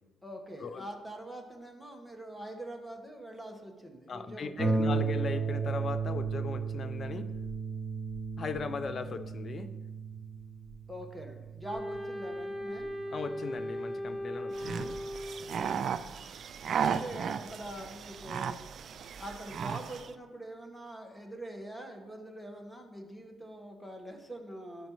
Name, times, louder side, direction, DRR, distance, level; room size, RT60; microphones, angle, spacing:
voice 1, 0.2-5.0 10.9-12.9 15.5-15.8 16.8-18.6 19.2-24.9, right 1 dB, ahead, 3 dB, 1.3 m, -44 dB
voice 2, 4.1-7.2 8.4-9.7 13.1-15.0, left 4 dB, 45° left, 10 dB, 0.6 m, -38 dB
Harp, 4.6-13.8 14.6-14.7 15.2-15.3, right 4 dB, 40° right, 2.6 m, -34 dB
Wind instrument woodwind instrument, 11.6-15.6, equal, 15° right, 1.2 m, -38 dB
sound 1, 14.5-20.1, right 7 dB, 60° right, 0.3 m, -35 dB
12.0 x 5.3 x 3.1 m, 1.2 s
cardioid pair, 90°, 0 cm